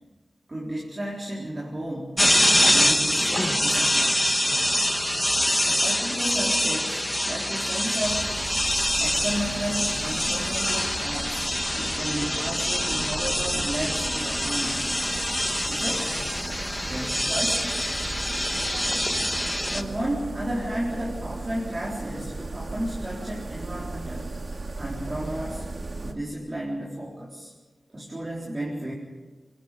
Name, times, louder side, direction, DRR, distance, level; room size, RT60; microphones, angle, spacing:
voice 1, 0.5-2.2 2.6-4.6 5.6-8.3 9.0-11.4 11.7-14.9 15.7-16.1 16.8-17.9 19.7-24.3 24.8-25.6 26.0-27.5 27.9-28.9, right 1 dB, 30° right, -6 dB, 4.0 m, -33 dB
sound 1, 2.2-19.8, left 1 dB, 10° left, 1.3 m, -25 dB
sound 2, 8.0-26.1, right 2 dB, 50° right, 2.0 m, -36 dB
24.5 x 21.5 x 5.3 m, 1.3 s
wide cardioid pair, 110°, 0 cm